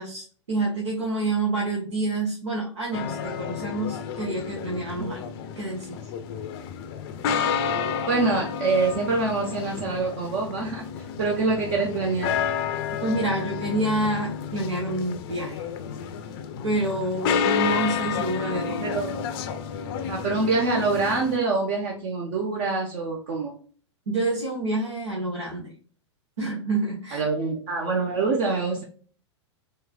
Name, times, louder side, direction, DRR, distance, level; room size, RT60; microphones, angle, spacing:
voice 1, 0.0-5.2 5.6-6.0 13.0-15.6 16.6-19.0 24.1-25.7 26.4-27.3, right 2 dB, 75° right, -3 dB, 1.5 m, -28 dB
sound 1, 2.9-21.4, left 7 dB, 50° left, 0.6 m, -30 dB
voice 2, 8.1-10.9 11.2-12.4 18.8-19.2 20.0-23.5 27.1-28.8, right 3 dB, 50° right, -1 dB, 1.1 m, -25 dB
4.6 x 3.2 x 2.3 m, 0.41 s
figure-of-eight pair, 100°, 15 cm